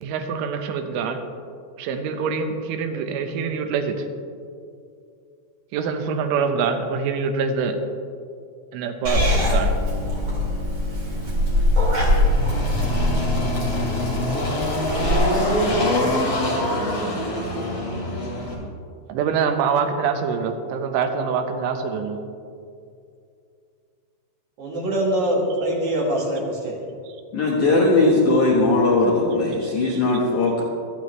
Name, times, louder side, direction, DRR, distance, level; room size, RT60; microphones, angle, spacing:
voice 1, 0.0-1.2 1.8-4.0 5.7-7.8 8.7-9.7 19.1-22.2 29.9-30.0, right 6 dB, 90° right, 6 dB, 3.4 m, -25 dB
Purr / Meow, 9.0-15.1, left 1 dB, 35° right, 2.2 m, -22 dB
Engine, 11.1-18.5, left 1 dB, 30° left, 2.1 m, -25 dB
voice 2, 24.6-26.8, right 1 dB, 55° right, -2 dB, 2.2 m, -23 dB
voice 3, 27.3-30.6, left 2 dB, 70° left, -4 dB, 1.8 m, -19 dB
24.5 x 9.0 x 3.2 m, 2.4 s
omnidirectional pair, 5.4 m